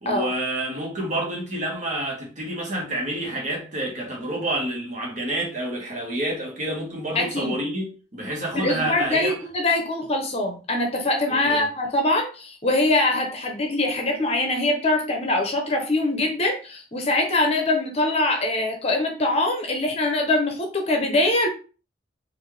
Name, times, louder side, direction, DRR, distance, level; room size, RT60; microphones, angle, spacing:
voice 1, 0.0-9.3 11.3-11.7, right 1 dB, 40° right, 1.4 m, -28 dB
voice 2, 7.1-7.6 8.5-21.5, left 2 dB, 35° left, 0.8 m, -23 dB
4.2 x 2.6 x 3.3 m
head